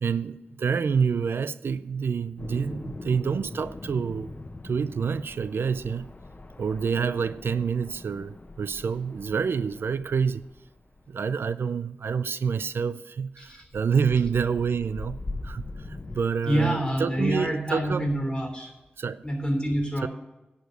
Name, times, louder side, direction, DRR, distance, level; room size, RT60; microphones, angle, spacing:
voice 1, 0.0-4.3 4.6-6.1 6.6-10.4 11.1-15.2 15.4-18.1 19.0-19.2 20.0-20.1, right 6 dB, 85° right, 0.3 m, -27 dB
sound 1, 2.4-11.2 13.4-16.2, left 2 dB, 40° left, 1.0 m, -41 dB
voice 2, 16.4-18.7 19.2-20.1, equal, 20° left, 2.9 m, -27 dB
10.5 x 5.1 x 8.0 m
wide cardioid pair, 75°, 4 cm